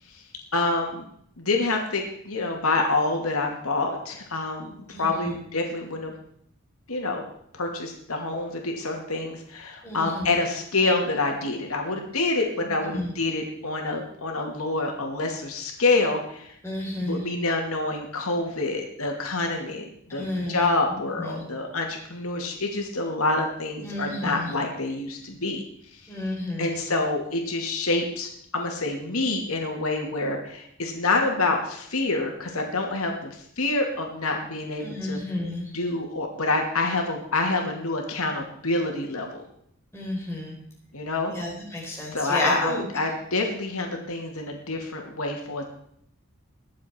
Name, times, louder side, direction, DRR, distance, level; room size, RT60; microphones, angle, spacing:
voice 1, 0.5-1.0 1.4-6.1 6.9-7.2 7.5-16.5 17.0-25.6 26.6-35.2 35.7-39.5 40.9-41.3 42.1-45.6, left 3 dB, 90° left, 2 dB, 2.4 m, -27 dB
voice 2, 4.9-5.3 9.8-10.3 12.9-13.1 16.6-17.2 20.1-20.7 21.0-21.4 23.8-24.5 26.1-26.8 34.8-35.7 39.9-40.6 41.3-42.8, left 1 dB, 10° left, -3 dB, 4.2 m, -31 dB
21.5 x 7.5 x 4.5 m, 0.66 s
head